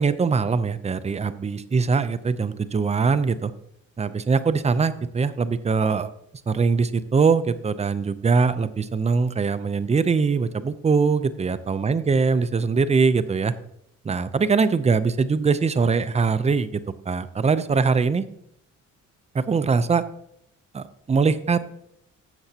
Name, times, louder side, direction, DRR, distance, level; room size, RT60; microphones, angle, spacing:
voice 1, 0.0-3.5 4.0-6.1 6.5-13.5 14.0-16.8 17.1-18.2 19.3-20.0 20.7-21.6, right 5 dB, 20° right, 13 dB, 0.6 m, -22 dB
12.0 x 7.8 x 2.8 m, 0.74 s
cardioid pair, 90°, 30 cm